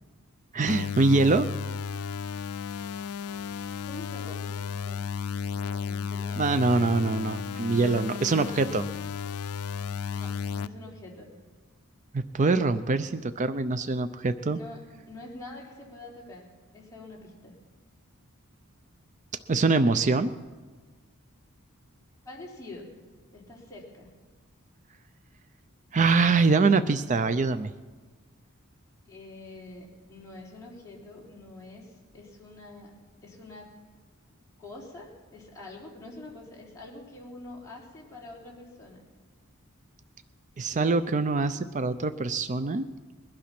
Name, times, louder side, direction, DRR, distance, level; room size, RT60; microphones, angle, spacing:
voice 1, 0.5-1.5 6.4-8.9 12.1-14.6 19.5-20.3 25.9-27.7 40.6-42.9, right 3 dB, 35° right, 11 dB, 0.5 m, -24 dB
sound 1, 0.7-10.7, left 6 dB, 85° left, 0.4 m, -34 dB
voice 2, 3.6-5.2 5.5-6.9 10.1-11.3 14.4-17.6 22.2-22.9 23.3-24.1 29.1-32.9 33.2-33.7 34.6-39.0, left 2 dB, 15° left, -4 dB, 3.7 m, -46 dB
21.5 x 11.5 x 6.0 m, 1.4 s
head